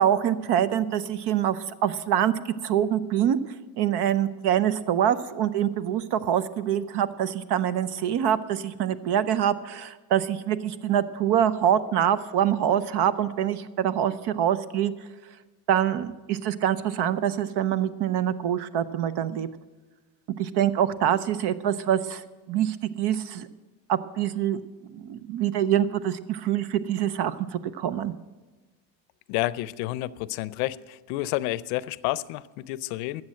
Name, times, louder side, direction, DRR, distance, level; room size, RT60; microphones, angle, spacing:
voice 1, 0.0-2.3 2.6-3.4 3.8-14.9 15.7-19.5 20.4-22.2 22.5-23.5 23.9-24.6 24.9-28.1, right 10 dB, 55° right, 15 dB, 0.8 m, -25 dB
voice 2, 29.3-33.2, left 17 dB, 75° left, 19 dB, 0.6 m, -30 dB
13.0 x 7.7 x 7.7 m, 1.2 s
supercardioid pair, 95°, 49 cm